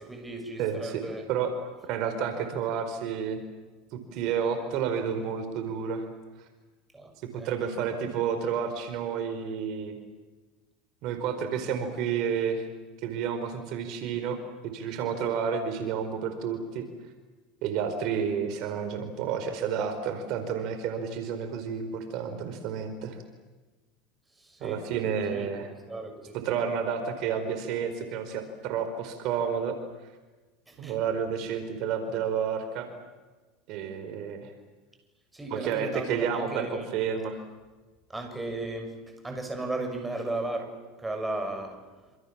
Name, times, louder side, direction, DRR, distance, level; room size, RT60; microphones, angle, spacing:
voice 1, 0.0-1.2 6.9-7.5 24.4-24.8 25.3-25.5 25.9-26.4 30.7-31.0 35.3-36.9 38.1-38.9 39.2-41.8, right 2 dB, 10° right, 5 dB, 6.9 m, -35 dB
voice 2, 0.6-1.0 1.3-3.4 3.9-6.0 7.2-10.0 11.0-12.7 13.0-14.4 14.6-16.9 17.6-23.2 24.6-25.7 26.3-29.8 30.8-32.9 33.7-34.5 35.5-37.4, right 7 dB, 55° right, 8 dB, 4.7 m, -30 dB
27.5 x 27.5 x 7.5 m, 1.3 s
supercardioid pair, 115°, 0 cm